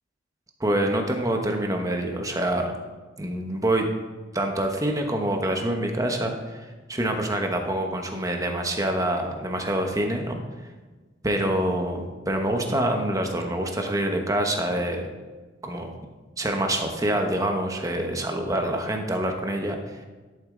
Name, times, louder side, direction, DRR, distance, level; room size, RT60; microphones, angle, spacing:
voice 1, 0.6-2.7 3.2-3.8 4.3-10.4 11.2-15.1 15.6-15.9 16.4-19.8, right 1 dB, 20° right, 3 dB, 1.1 m, -26 dB
11.5 x 7.2 x 3.9 m, 1.3 s
head